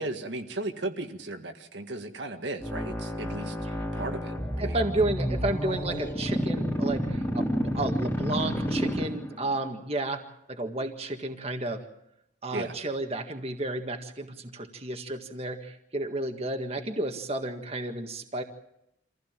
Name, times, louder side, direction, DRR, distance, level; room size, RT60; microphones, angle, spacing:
voice 1, 0.0-3.6 3.9-4.8 12.5-12.7, right 2 dB, 75° right, 5 dB, 1.8 m, -35 dB
sound 1, 2.6-9.6, equal, 10° left, 3.0 m, -30 dB
voice 2, 4.6-10.2 10.5-11.8 12.4-18.4, right 2 dB, 35° right, 4 dB, 1.8 m, -32 dB
26.5 x 15.5 x 7.4 m, 0.80 s
head